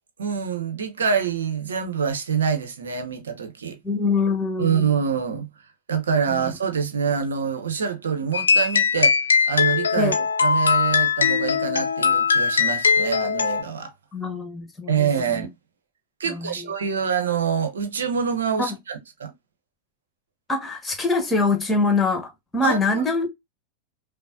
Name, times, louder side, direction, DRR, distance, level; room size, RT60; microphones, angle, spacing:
voice 1, 0.2-3.8 4.6-5.5 5.9-9.2 9.4-10.1 10.4-13.9 14.9-15.5 16.2-19.3 22.6-23.0, right 6 dB, 65° right, 0.9 m, -25 dB
voice 2, 3.8-4.9 6.3-6.6 9.9-10.2 14.1-15.5 16.2-16.7 18.6-18.8 20.5-23.3, left 3 dB, 10° left, 1.3 m, -24 dB
sound 1, 8.3-13.6, left 6 dB, 70° left, 0.5 m, -20 dB
5.3 x 2.1 x 2.6 m
figure-of-eight pair, 90°, 0 cm